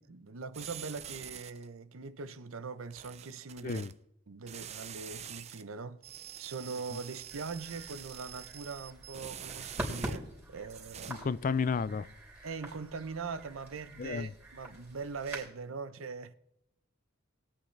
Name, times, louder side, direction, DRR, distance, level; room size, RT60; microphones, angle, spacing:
voice 1, 0.1-3.9 4.3-6.0 6.4-11.3 12.4-16.3, right 4 dB, 80° right, 0.7 m, -42 dB
sound 1, 0.5-1.7 2.9-3.9 4.5-5.6 6.0-10.4 10.7-11.1, right 9 dB, 30° right, 0.5 m, -46 dB
sound 2, 7.3-15.5, right 1 dB, 10° right, 3.1 m, -45 dB
voice 2, 11.1-12.1 14.0-14.3, left 5 dB, 40° left, 0.3 m, -32 dB
20.5 x 8.5 x 3.3 m
head